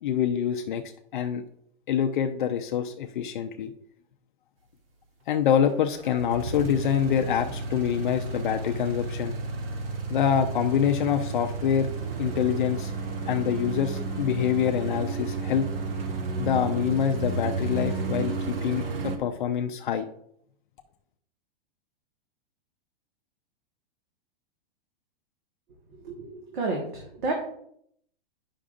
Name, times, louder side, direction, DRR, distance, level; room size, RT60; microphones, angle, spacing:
voice 1, 0.0-0.8 1.1-1.4 1.9-3.7 5.3-9.3 10.1-11.9 12.2-12.9 13.3-15.7 16.4-20.0, left 9 dB, 55° left, 5 dB, 0.5 m, -26 dB
sound 1, 5.7-19.2, right 3 dB, 70° right, 1.4 m, -32 dB
voice 2, 26.0-27.3, right 3 dB, 55° right, 0 dB, 1.6 m, -31 dB
9.8 x 6.0 x 2.5 m, 0.69 s
supercardioid pair, 170°, 30 cm